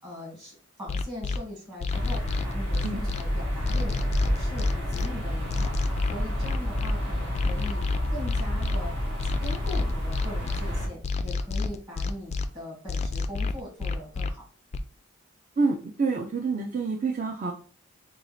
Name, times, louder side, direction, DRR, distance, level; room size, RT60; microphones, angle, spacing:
voice 1, 0.0-5.8 6.1-7.8 8.1-9.0 9.2-14.5, left 1 dB, 25° right, -4 dB, 1.9 m, -40 dB
sound 1, 0.9-1.4 1.8-3.2 3.6-5.1 5.5-6.9 7.3-8.8 9.2-10.6 11.0-12.5 12.9-14.3 14.7-14.8, left 4 dB, 30° left, 0.3 m, -29 dB
sound 2, 1.9-10.9, equal, 60° right, 2.2 m, -29 dB
voice 2, 15.6-17.5, right 4 dB, 40° right, 1 dB, 0.5 m, -27 dB
5.2 x 2.4 x 3.1 m, 0.38 s
head